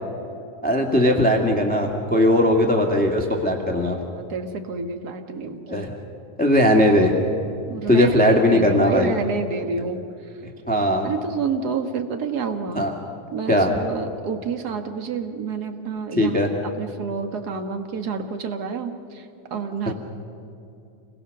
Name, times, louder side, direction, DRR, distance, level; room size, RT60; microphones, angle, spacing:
voice 1, 0.6-4.0 5.7-5.9 6.4-7.1 7.9-9.2 10.4-11.1 12.7-12.9 13.5-13.7 16.1-16.5, left 1 dB, 5° left, 1 dB, 1.1 m, -19 dB
voice 2, 4.1-5.8 7.7-10.0 11.0-12.9 13.3-19.2 19.5-19.9, right 5 dB, 60° right, 6 dB, 1.0 m, -29 dB
28.5 x 22.0 x 6.6 m, 2.6 s
omnidirectional pair, 3.7 m